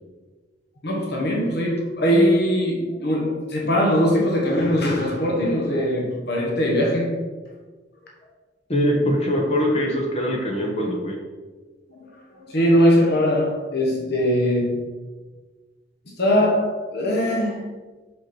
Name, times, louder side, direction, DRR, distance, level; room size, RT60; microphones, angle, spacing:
voice 1, 0.8-7.2 11.9-12.1 12.5-14.8 16.2-17.7, equal, 60° left, -2 dB, 1.3 m, -21 dB
voice 2, 8.7-11.2, equal, 35° left, 0 dB, 1.2 m, -22 dB
6.2 x 5.4 x 4.4 m, 1.3 s
head